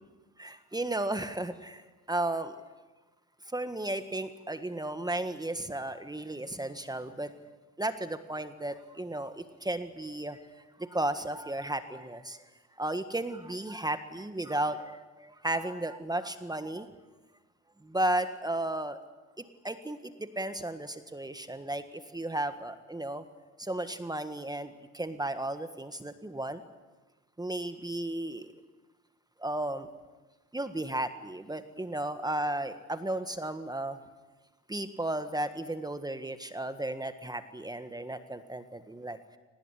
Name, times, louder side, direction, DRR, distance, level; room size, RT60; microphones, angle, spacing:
voice 1, 0.4-1.8 2.1-2.5 3.5-7.3 7.8-10.4 10.8-12.4 12.8-16.9 17.8-19.0 19.4-23.2 23.6-26.6 27.4-28.5 29.4-29.9 30.5-34.0 34.7-39.2, right 1 dB, 15° right, 10 dB, 1.6 m, -34 dB
24.0 x 19.5 x 9.9 m, 1.2 s
cardioid pair, 90°, 30 cm